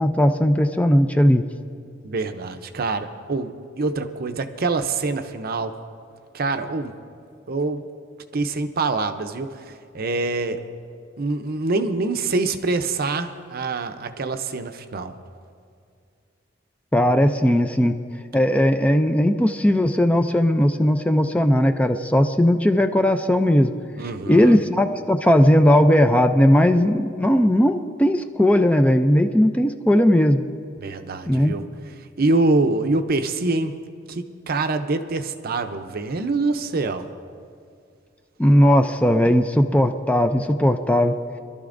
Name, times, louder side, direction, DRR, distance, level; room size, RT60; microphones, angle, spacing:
voice 1, 0.0-1.4 16.9-17.9 18.3-23.7 24.3-30.4 31.3-31.6 38.4-41.1, equal, 5° left, 7 dB, 0.4 m, -18 dB
voice 2, 2.0-5.7 6.3-7.0 7.5-7.9 8.3-10.6 11.2-15.2 24.0-24.6 30.8-31.6 32.0-33.7 34.1-37.1, right 3 dB, 50° right, 8 dB, 0.6 m, -25 dB
24.5 x 12.5 x 2.6 m, 2.3 s
head